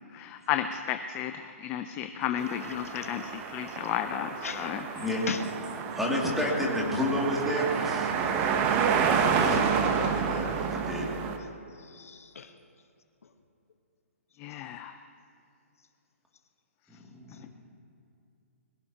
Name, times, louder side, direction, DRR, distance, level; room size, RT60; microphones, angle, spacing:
voice 1, 0.1-4.8 14.4-14.9 17.4-17.5, left 10 dB, 20° left, 8 dB, 0.4 m, -33 dB
sound 1, 2.4-11.4, right 6 dB, 25° right, 0.9 m, -29 dB
voice 2, 2.7-3.1 3.7-3.9 4.4-4.7 5.3-5.4 11.8-12.5, left 6 dB, 75° left, 7 dB, 1.2 m, -38 dB
voice 3, 5.9-8.5 9.1-11.1 17.1-17.5, left 1 dB, 5° right, -3 dB, 2.4 m, -31 dB
21.5 x 16.5 x 2.9 m, 2.5 s
hypercardioid pair, 155°, 8 cm